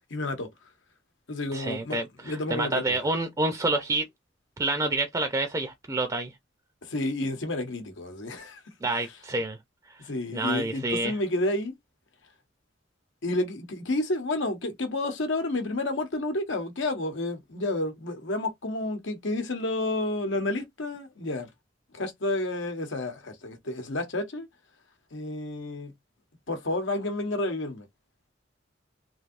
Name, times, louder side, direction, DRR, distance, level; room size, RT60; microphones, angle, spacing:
voice 1, 0.1-0.5 1.3-3.0 6.8-8.6 8.9-9.1 10.0-11.7 13.2-21.5 21.9-24.5 25.1-25.9 26.5-27.9, left 2 dB, 85° left, 1.0 m, -30 dB
voice 2, 1.5-4.0 4.6-6.3 8.8-9.6 10.3-11.1, right 2 dB, 20° right, 0.4 m, -28 dB
3.2 x 2.7 x 2.5 m
head